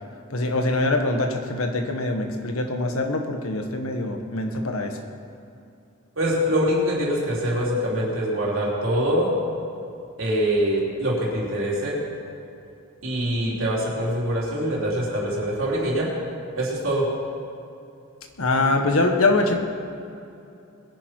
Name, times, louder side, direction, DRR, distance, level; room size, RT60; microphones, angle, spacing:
voice 1, 0.3-4.9 18.4-19.6, left 2 dB, 85° left, 4 dB, 1.6 m, -23 dB
voice 2, 6.2-9.3 10.2-12.0 13.0-16.1 16.6-17.1, equal, 65° right, -5 dB, 4.3 m, -24 dB
21.5 x 10.5 x 4.7 m, 2.6 s
head